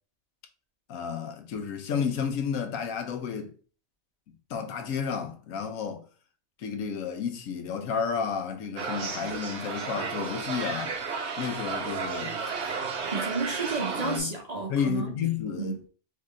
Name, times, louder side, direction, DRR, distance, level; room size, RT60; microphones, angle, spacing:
voice 1, 0.9-3.5 4.5-6.0 6.6-11.0 11.4-12.4 14.0-14.3 14.7-15.8, left 7 dB, 70° left, 1.2 m, -31 dB
sound 1, 8.8-14.2, right 5 dB, 55° right, 1.0 m, -33 dB
voice 2, 13.1-15.2 15.6-15.8, right 3 dB, 35° right, 0.7 m, -31 dB
3.8 x 3.2 x 3.7 m
omnidirectional pair, 1.5 m